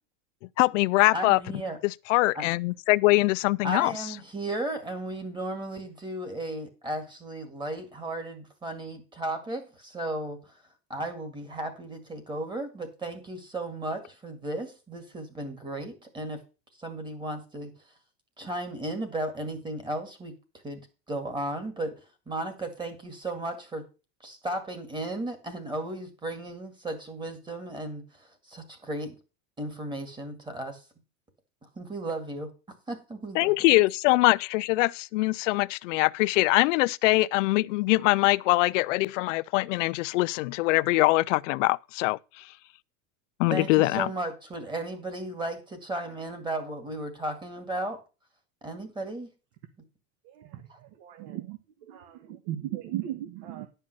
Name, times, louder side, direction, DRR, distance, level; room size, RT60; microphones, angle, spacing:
voice 1, 0.6-1.4 1.8-3.9 33.3-42.4 43.4-44.1, left 21 dB, 85° left, 0.6 m, -23 dB
voice 2, 1.1-1.8 2.3-2.4 3.6-10.5 10.9-16.4 16.8-17.7 18.4-20.3 20.6-21.9 22.3-23.9 24.2-29.1 29.6-30.8 31.6-32.5 32.9-33.5 43.5-48.0 48.6-49.3 50.7-50.8, right 1 dB, 10° right, 2.0 m, -35 dB
voice 3, 50.3-50.7 51.0-51.6 52.5-53.7, right 13 dB, 60° right, 1.6 m, -35 dB
11.0 x 5.6 x 6.5 m
supercardioid pair, 155°, 36 cm